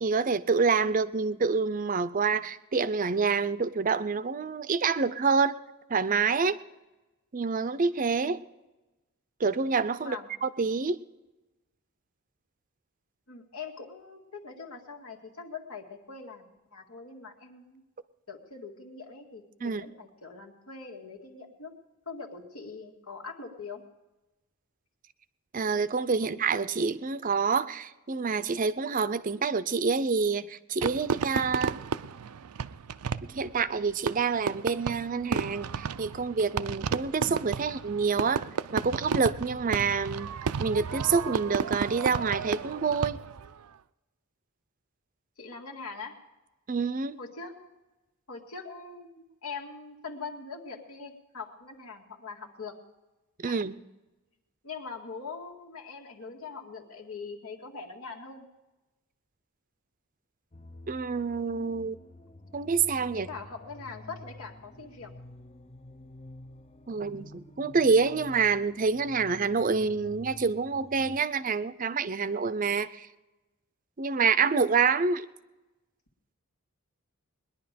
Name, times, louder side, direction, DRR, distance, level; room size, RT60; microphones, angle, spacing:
voice 1, 0.0-5.5 5.9-6.5 7.3-8.4 9.4-11.0 19.6-19.9 25.5-31.8 33.2-38.4 38.7-40.3 40.6-43.2 46.7-47.2 53.4-53.8 60.9-62.0 62.5-63.3 66.9-73.1 74.0-75.3, right 5 dB, 35° right, 14 dB, 0.5 m, -27 dB
voice 2, 13.3-17.8 18.3-21.7 22.1-23.8 45.4-46.2 47.2-47.7 48.3-52.8 53.5-53.6 54.6-58.5 63.1-65.1, left 4 dB, 85° left, 1 dB, 2.0 m, -42 dB
Fireworks, 30.8-43.5, right 6 dB, 90° right, 0.5 m, -33 dB
sound 1, 60.5-71.2, left 1 dB, 30° left, 0.6 m, -49 dB
20.5 x 11.0 x 5.1 m, 1.1 s
head